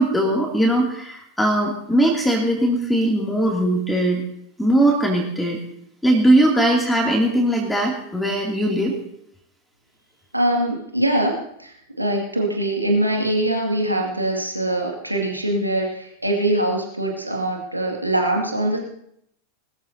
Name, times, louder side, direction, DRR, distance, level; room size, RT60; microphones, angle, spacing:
voice 1, 0.0-4.2 4.6-5.6 6.0-8.9, right 1 dB, 5° left, -1 dB, 2.6 m, -19 dB
voice 2, 10.3-18.8, right 1 dB, 85° right, 0 dB, 2.2 m, -23 dB
21.0 x 13.5 x 2.8 m, 0.74 s
figure-of-eight pair, 90°, 0 cm